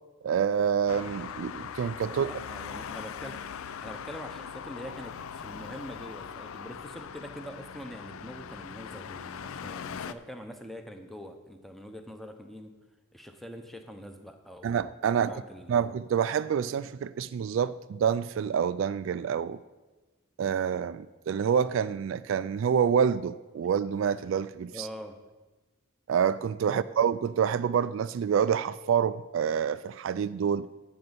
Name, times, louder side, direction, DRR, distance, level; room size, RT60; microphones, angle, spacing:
voice 1, 0.2-2.3 14.6-15.4 15.7-19.6 20.4-24.9 26.1-30.7, right 7 dB, 65° right, 0.3 m, -27 dB
Traffic noise roadway noise, 0.9-10.1, left 7 dB, 80° left, 0.4 m, -40 dB
voice 2, 2.1-3.5 3.8-12.7 13.1-14.8 15.1-15.8 24.7-25.2 26.7-26.8, equal, ahead, 0.8 m, -44 dB
11.0 x 5.4 x 8.0 m
head